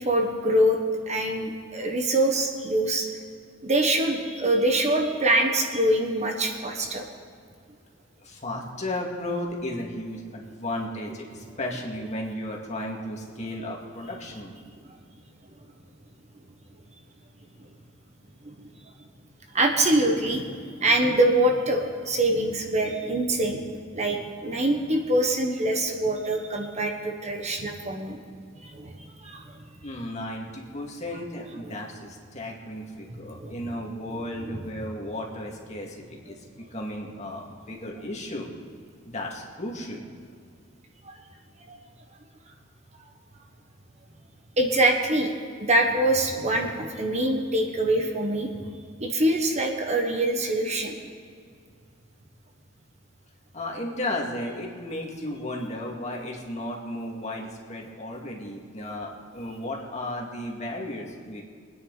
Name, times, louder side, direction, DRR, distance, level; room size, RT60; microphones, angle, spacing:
voice 1, 0.0-3.1 3.6-7.0 18.4-18.5 19.5-23.6 23.9-28.2 28.6-29.6 33.3-33.5 34.4-34.5 41.0-41.1 41.7-41.8 44.6-45.3 45.6-48.7 49.0-51.0, right 1 dB, 35° right, 2 dB, 1.4 m, -24 dB
voice 2, 8.2-14.5 29.8-36.4 36.7-38.5 39.1-40.1 53.5-61.4, left 1 dB, 35° left, -1 dB, 2.2 m, -34 dB
24.0 x 9.9 x 4.1 m, 2.2 s
head